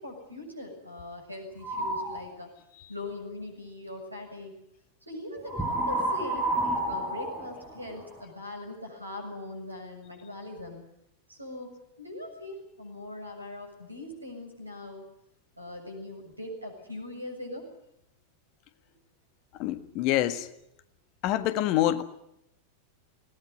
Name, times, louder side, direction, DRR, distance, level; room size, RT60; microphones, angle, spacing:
voice 1, 0.0-2.5 2.9-4.5 5.0-6.5 6.9-10.8 11.3-15.1 15.6-17.7, left 1 dB, 85° right, 5 dB, 7.1 m, -41 dB
sound 1, 1.6-2.2 5.5-8.2, right 1 dB, 5° right, 5.4 m, -30 dB
voice 2, 19.6-20.5 21.2-22.0, left 13 dB, 40° left, 13 dB, 1.5 m, -26 dB
21.0 x 18.0 x 9.9 m, 0.80 s
figure-of-eight pair, 90°, 0 cm